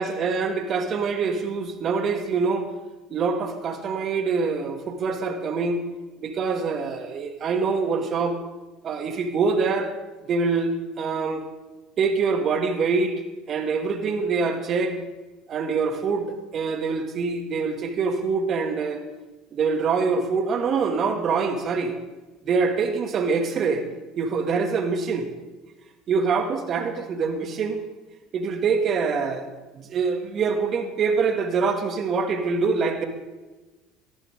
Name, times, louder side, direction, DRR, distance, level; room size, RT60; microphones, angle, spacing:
voice 1, 0.0-2.7 3.1-5.8 6.2-8.4 8.8-9.9 10.3-11.4 12.0-13.2 13.5-15.0 15.5-19.0 19.5-21.9 22.5-23.8 24.2-25.3 26.1-27.8 28.3-29.5 29.7-33.0, right 4 dB, 45° right, 5 dB, 2.3 m, -25 dB
18.0 x 14.0 x 3.8 m, 1.2 s
hypercardioid pair, 80°, 0 cm